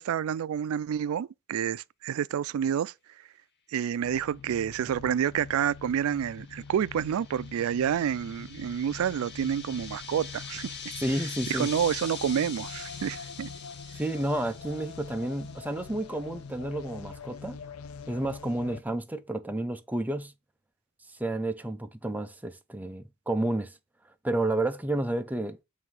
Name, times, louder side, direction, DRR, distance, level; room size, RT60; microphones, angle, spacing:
voice 1, 0.0-2.9 3.7-10.8 11.5-13.5, right 8 dB, 75° right, 0.3 m, -29 dB
sound 1, 4.0-18.8, left 5 dB, 85° left, 0.5 m, -45 dB
sound 2, 6.1-15.9, left 6 dB, 55° left, 0.9 m, -43 dB
voice 2, 11.0-11.7 13.9-17.6 18.1-20.3 21.2-23.7 24.2-25.6, right 1 dB, 10° right, 0.5 m, -31 dB
7.4 x 2.7 x 4.7 m
head